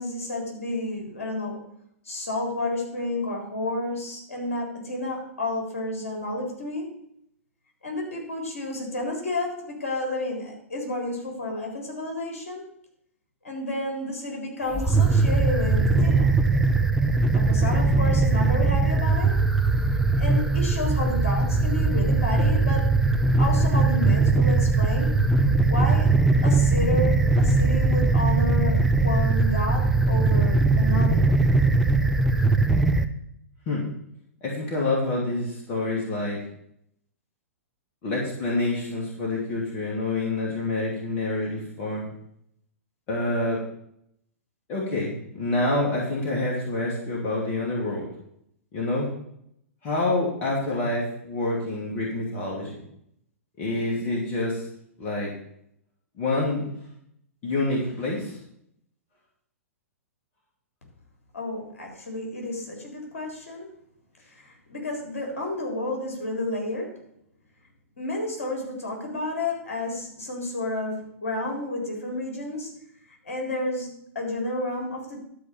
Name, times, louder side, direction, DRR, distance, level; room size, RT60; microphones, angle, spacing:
voice 1, 0.0-1.6 2.0-7.0 7.8-12.7 13.4-16.3 17.3-19.4 20.2-22.9 23.4-25.2 25.7-26.1 26.4-31.3 61.3-63.7 64.3-67.0 68.0-72.8 73.2-75.2, left 1 dB, 60° left, 0 dB, 3.8 m, -31 dB
sound 1, 14.7-33.1, right 3 dB, 5° right, 0.7 m, -20 dB
voice 2, 34.4-36.4 38.0-42.1 43.1-43.6 44.7-48.1 48.7-49.1 49.8-52.8 53.6-54.7 55.0-55.3 56.2-56.6 57.4-58.4, left 2 dB, 30° left, -3 dB, 2.6 m, -27 dB
11.5 x 4.9 x 7.2 m, 0.73 s
figure-of-eight pair, 105°, 8 cm